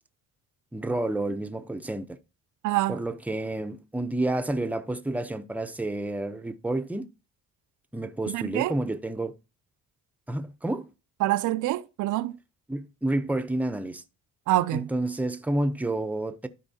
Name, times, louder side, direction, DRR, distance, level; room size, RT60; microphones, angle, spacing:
voice 1, 0.7-2.2 2.9-7.1 7.9-9.3 10.3-10.9 12.7-14.0 14.7-16.5, right 1 dB, 5° right, 0.6 m, -30 dB
voice 2, 2.6-3.0 8.3-8.7 11.2-12.4 14.5-14.9, right 16 dB, 80° right, 0.5 m, -26 dB
12.5 x 4.5 x 2.8 m
cardioid pair, 90°, 30 cm